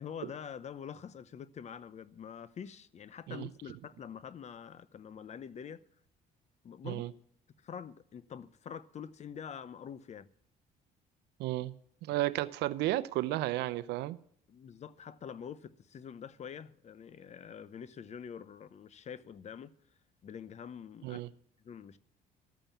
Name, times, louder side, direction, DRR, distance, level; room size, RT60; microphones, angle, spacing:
voice 1, 0.0-5.8 6.6-7.1 7.6-10.3 14.5-19.7 20.2-21.2 21.6-22.0, left 7 dB, 40° left, 0.8 m, -45 dB
voice 2, 11.4-11.7 12.0-14.2 21.0-21.3, right 16 dB, 85° right, 0.7 m, -33 dB
13.0 x 9.0 x 7.2 m
cardioid pair, 110°, 17 cm